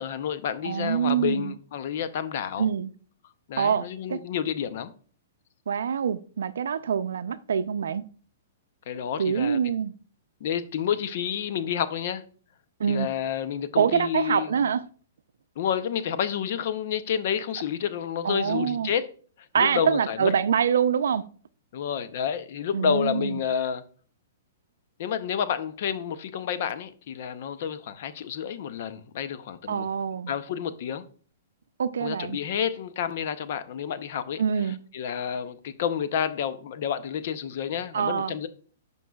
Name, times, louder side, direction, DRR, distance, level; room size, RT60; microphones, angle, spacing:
voice 1, 0.0-2.7 3.5-4.9 8.9-9.6 10.4-12.2 12.9-14.6 15.6-19.1 19.5-20.3 21.7-23.8 25.0-29.9 30.3-31.0 32.0-34.4 34.9-38.5, left 8 dB, 50° left, 0.6 m, -29 dB
voice 2, 0.6-1.5 2.6-2.9 3.6-4.2 5.7-8.0 9.2-9.9 12.8-13.1 13.8-14.8 18.2-18.9 19.5-21.2 22.7-23.4 29.7-30.3 31.8-32.4 34.4-34.8 37.9-38.3, right 7 dB, 85° right, 0.5 m, -25 dB
11.0 x 5.3 x 2.3 m
hypercardioid pair, 160°, 0 cm